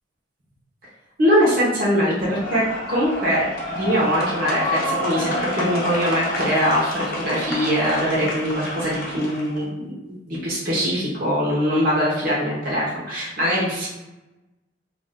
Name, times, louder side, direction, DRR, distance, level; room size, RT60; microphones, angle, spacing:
voice 1, 1.2-13.9, equal, 55° right, -7 dB, 0.8 m, -22 dB
sound 1, 2.2-9.6, left 1 dB, 55° left, 0.7 m, -28 dB
2.5 x 2.3 x 3.6 m, 1.0 s
head